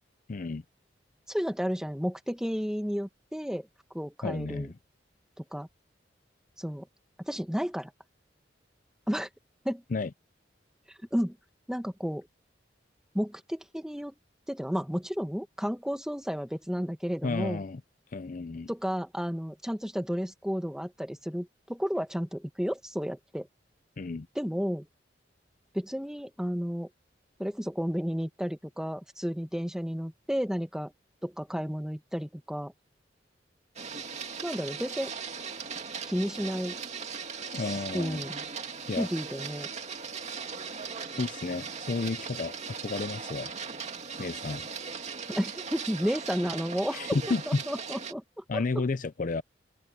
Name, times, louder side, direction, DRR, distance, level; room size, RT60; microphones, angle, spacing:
voice 1, 0.3-0.6 4.2-4.7 9.9-10.1 17.2-17.8 18.1-18.7 24.0-24.3 37.5-38.2 38.9-39.1 41.2-43.5 44.2-44.7 46.9-47.6 48.5-49.4, left 3 dB, 45° left, 0.5 m, -32 dB
voice 2, 1.3-3.7 3.9-4.7 5.5-5.7 6.6-6.8 7.2-7.9 9.1-9.3 9.6-9.8 11.1-11.3 11.7-12.3 13.1-14.1 14.5-17.6 18.7-23.5 24.3-24.8 25.7-26.9 27.4-30.9 31.2-32.7 34.4-35.1 36.0-36.8 37.7-38.4 39.0-39.7 45.3-47.0 47.5-48.8, equal, 5° right, 1.7 m, -32 dB
Printer, 33.8-48.1, right 5 dB, 40° right, 2.4 m, -38 dB
open air
head